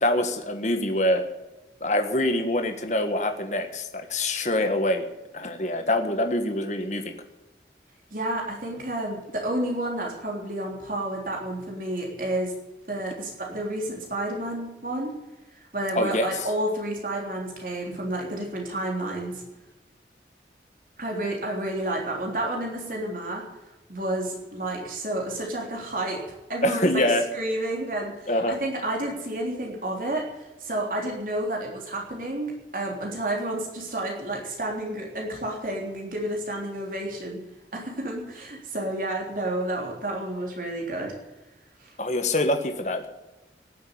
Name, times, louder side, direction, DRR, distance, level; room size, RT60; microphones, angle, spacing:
voice 1, 0.0-1.3 1.8-5.1 5.3-7.1 16.0-16.3 26.6-27.2 28.3-28.6 42.0-43.1, left 1 dB, 40° left, 6 dB, 1.6 m, -25 dB
voice 2, 8.1-12.5 12.9-15.2 15.7-19.4 21.0-23.5 23.9-37.4 37.7-41.1 41.8-41.9, right 1 dB, 50° right, -1 dB, 3.6 m, -30 dB
17.5 x 7.8 x 9.7 m, 1.0 s
head